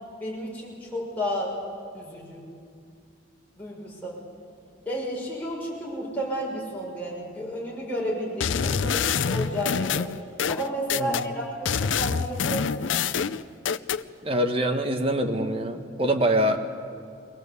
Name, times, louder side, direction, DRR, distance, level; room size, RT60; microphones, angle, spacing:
voice 1, 0.2-1.5 1.9-2.4 3.6-4.2 4.8-10.1 10.5-13.1, equal, 10° left, -5 dB, 6.1 m, -32 dB
sound 1, 8.4-11.3 11.7-14.0, left 6 dB, 80° left, 0.5 m, -26 dB
voice 2, 11.0-11.3 14.2-16.6, right 1 dB, 30° right, 5 dB, 1.5 m, -24 dB
23.5 x 18.0 x 8.3 m, 2.3 s
head